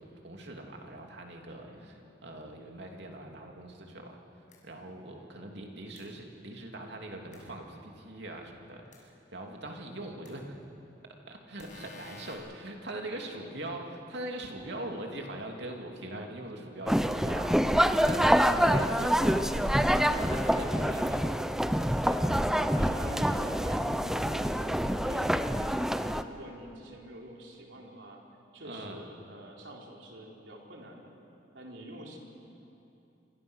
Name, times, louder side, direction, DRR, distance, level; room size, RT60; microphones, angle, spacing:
voice 1, 0.0-4.2 4.6-10.6 11.3-18.3 18.6-19.5 19.8-21.4 22.0-22.3 28.6-29.0, right 1 dB, 65° right, 1 dB, 3.0 m, -42 dB
sound 1, 4.5-4.6 6.0-6.1 7.3-7.4 8.9-9.0 10.2-10.3 11.6-12.3, left 4 dB, 45° left, 6.1 m, -50 dB
sound 2, 16.9-26.2, equal, 5° right, 0.7 m, -26 dB
voice 2, 22.3-28.2 28.5-31.1 31.5-32.2, equal, 80° right, -1 dB, 4.1 m, -46 dB
26.5 x 26.5 x 6.5 m, 2.9 s
head